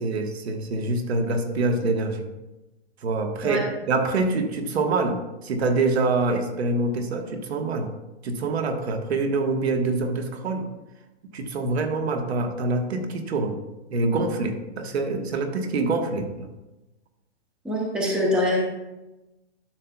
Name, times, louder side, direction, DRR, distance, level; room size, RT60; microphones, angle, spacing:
voice 1, 0.0-2.2 3.0-5.2 5.4-7.9 8.2-10.6 11.3-13.6 13.9-16.3, right 3 dB, 70° right, 5 dB, 1.2 m, -25 dB
voice 2, 17.6-18.6, left 1 dB, ahead, -2 dB, 0.5 m, -24 dB
12.0 x 5.7 x 2.2 m, 1.0 s
hypercardioid pair, 155°, 34 cm